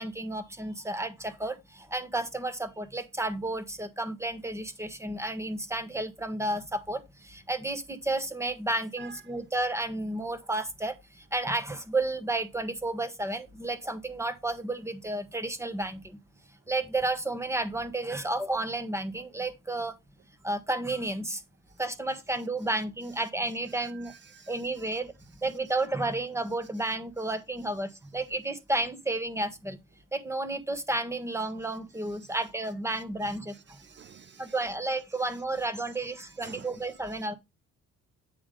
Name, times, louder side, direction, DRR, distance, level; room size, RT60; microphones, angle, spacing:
voice 1, 0.0-16.2 16.7-20.0 20.4-21.4 21.8-24.1 24.5-25.1 25.4-29.8 30.1-33.8 34.4-37.3, right 2 dB, 10° right, 1.3 m, -32 dB
voice 2, 24.0-24.5 32.2-32.3 32.9-34.5 36.4-36.7, right 8 dB, 40° right, 0.4 m, -50 dB
9.1 x 3.5 x 5.0 m
cardioid pair, 90°, 30 cm